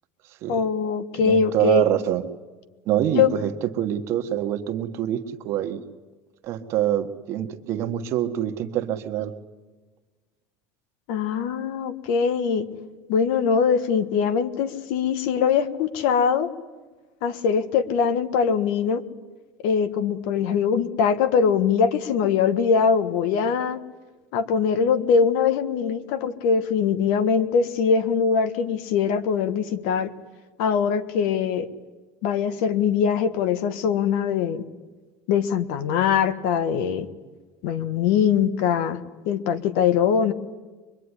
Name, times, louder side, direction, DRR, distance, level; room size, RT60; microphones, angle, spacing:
voice 1, 0.5-1.9 3.1-3.3 11.1-12.7 13.1-16.5 17.2-19.0 19.6-23.8 24.3-30.1 30.6-31.7 32.2-34.6 35.3-37.1 37.6-40.3, left 6 dB, 65° left, 13 dB, 1.6 m, -22 dB
voice 2, 1.1-2.2 2.8-3.5 3.8-5.8 6.4-9.3, right 11 dB, 40° right, 7 dB, 1.5 m, -25 dB
24.0 x 23.5 x 9.9 m, 1.3 s
cardioid pair, 175°, 7 cm